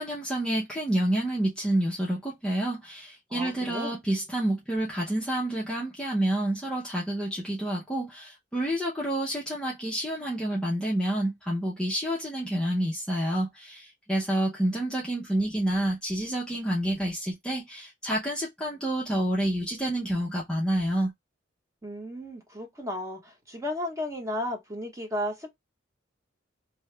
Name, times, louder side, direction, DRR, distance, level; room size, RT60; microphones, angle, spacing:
voice 1, 0.0-21.1, right 1 dB, 5° left, 0.6 m, -28 dB
voice 2, 3.3-4.0 21.8-25.5, left 1 dB, 15° right, 1.0 m, -34 dB
2.8 x 2.3 x 3.2 m
head